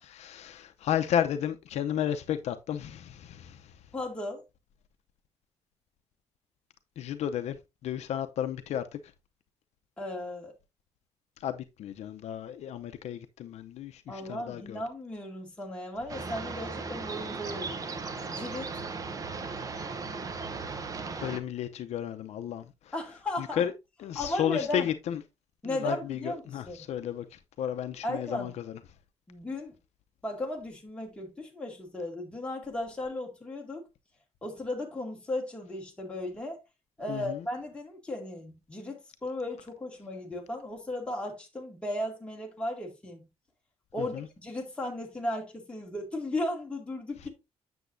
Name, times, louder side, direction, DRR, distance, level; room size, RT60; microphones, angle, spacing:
voice 1, 0.0-3.7 7.0-7.6 7.8-9.0 11.4-14.8 21.2-22.6 23.4-23.7 24.0-25.2 25.6-28.8 37.1-37.4 44.0-44.3, left 10 dB, 70° left, 0.6 m, -33 dB
voice 2, 3.9-4.4 10.0-10.5 14.1-17.8 18.3-18.7 22.9-23.6 24.2-24.9 25.6-26.8 28.0-28.5 29.3-29.7 30.2-33.8 34.4-36.6 37.0-43.2 43.9-47.3, left 1 dB, 10° left, 2.1 m, -35 dB
sound 1, 16.1-21.4, right 4 dB, 30° right, 0.8 m, -37 dB
8.2 x 7.0 x 2.6 m
cardioid pair, 170°, 12 cm